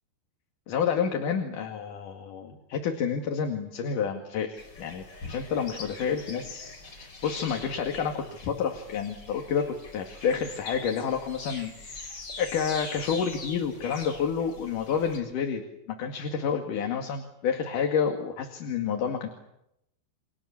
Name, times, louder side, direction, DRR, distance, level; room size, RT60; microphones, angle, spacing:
voice 1, 0.7-19.3, left 6 dB, 55° left, 3 dB, 3.3 m, -29 dB
sound 1, 4.6-15.2, left 3 dB, 25° left, 5.0 m, -43 dB
30.0 x 26.0 x 7.2 m, 0.81 s
omnidirectional pair, 5.1 m